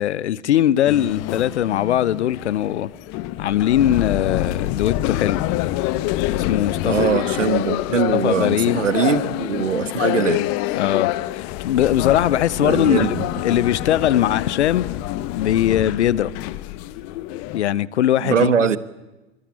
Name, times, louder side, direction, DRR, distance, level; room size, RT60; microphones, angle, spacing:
voice 1, 0.0-2.9 3.4-5.6 6.3-7.1 7.9-8.8 10.7-13.1 13.4-14.9 15.4-16.3 17.5-18.5, left 11 dB, 65° left, 1.1 m, -20 dB
sound 1, 0.9-17.6, left 15 dB, 40° left, 1.4 m, -26 dB
voice 2, 6.8-10.5 12.6-13.6 18.2-18.8, right 7 dB, 80° right, 1.6 m, -22 dB
25.0 x 25.0 x 8.7 m
figure-of-eight pair, 95°, 37 cm